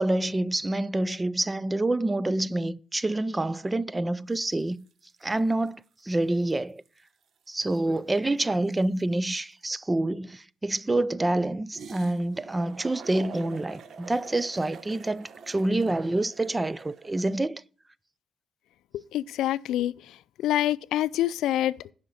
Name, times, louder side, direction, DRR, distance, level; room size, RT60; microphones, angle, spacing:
voice 1, 0.0-4.8 5.2-6.8 7.5-17.6, right 2 dB, 15° right, 0.4 m, -27 dB
sound 1, 4.4-4.6 4.9-6.1 6.5-6.6 6.8-9.7 11.7-17.4, right 5 dB, 60° right, 0.9 m, -46 dB
voice 2, 19.1-19.9 20.4-21.9, left 13 dB, 85° left, 0.4 m, -26 dB
10.0 x 5.7 x 6.5 m
cardioid pair, 90°, 0 cm